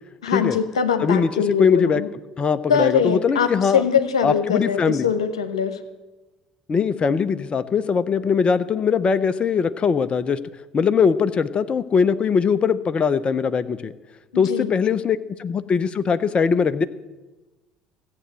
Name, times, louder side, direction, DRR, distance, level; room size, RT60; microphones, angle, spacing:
voice 1, 0.2-2.1 2.7-5.8 14.3-14.7, left 7 dB, 85° left, 8 dB, 1.1 m, -22 dB
voice 2, 1.0-1.3 1.6-2.0 2.4-3.8 4.2-5.1 6.7-10.4 10.7-13.9 14.4-16.8, left 6 dB, 35° left, 13 dB, 0.8 m, -21 dB
15.5 x 8.1 x 7.7 m, 1.1 s
hypercardioid pair, 60°, 3 cm